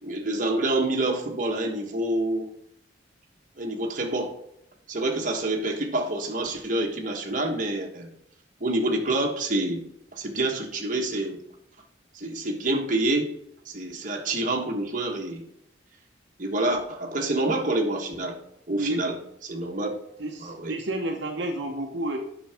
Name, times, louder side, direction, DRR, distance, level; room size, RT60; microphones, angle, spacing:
voice 1, 0.0-2.5 3.6-4.3 4.9-8.1 8.6-9.8 10.1-11.4 12.1-13.3 13.6-15.4 16.4-18.4 18.7-19.1 19.4-19.9 20.4-20.7, right 2 dB, 40° right, 1 dB, 1.3 m, -27 dB
voice 2, 20.2-22.2, right 1 dB, 65° right, 1 dB, 1.0 m, -30 dB
8.7 x 6.2 x 3.5 m, 0.78 s
head